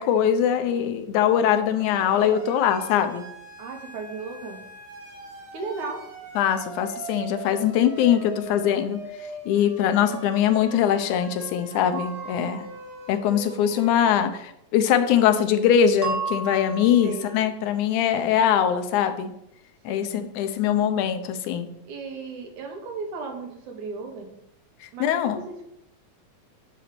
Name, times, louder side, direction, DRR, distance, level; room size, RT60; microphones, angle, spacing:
voice 1, 0.0-3.2 6.4-12.6 13.1-19.3 19.9-21.7 24.8-25.4, left 9 dB, 85° left, 9 dB, 2.2 m, -22 dB
Siren, 1.7-14.1, right 2 dB, 50° right, 2.1 m, -41 dB
voice 2, 3.6-4.6 5.5-6.0 12.4-12.7 17.0-17.5 19.9-20.4 21.9-24.3 24.9-25.6, right 4 dB, 80° right, 3 dB, 2.7 m, -36 dB
sound 1, 11.9-13.1 16.0-17.4, right 5 dB, 10° right, 1.5 m, -33 dB
9.2 x 4.0 x 6.6 m, 0.79 s
omnidirectional pair, 3.4 m